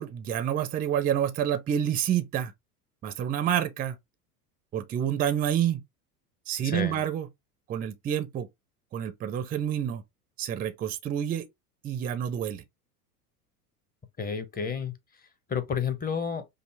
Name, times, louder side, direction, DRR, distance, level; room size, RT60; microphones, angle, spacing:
voice 1, 0.0-2.5 3.0-4.0 4.7-5.8 6.5-7.3 7.7-8.5 8.9-10.0 10.4-11.5 11.8-12.6, right 10 dB, 20° right, 0.5 m, -28 dB
voice 2, 6.6-7.0 14.2-16.5, left 6 dB, 20° left, 0.8 m, -31 dB
5.4 x 2.0 x 3.3 m
hypercardioid pair, 85°, 47 cm